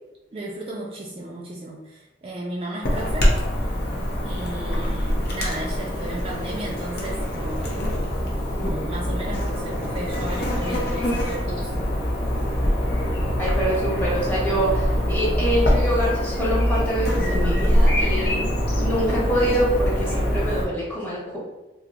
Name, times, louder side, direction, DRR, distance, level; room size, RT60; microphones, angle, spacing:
voice 1, 0.3-3.3 4.2-8.0 8.5-11.9, right 1 dB, 35° right, -2 dB, 0.3 m, -34 dB
Chirp tweet / Buzz, 2.8-20.7, equal, 60° left, 0.7 m, -24 dB
voice 2, 13.4-18.4 18.8-21.4, right 1 dB, 10° left, -7 dB, 1.1 m, -25 dB
4.2 x 2.0 x 2.5 m, 1.1 s
head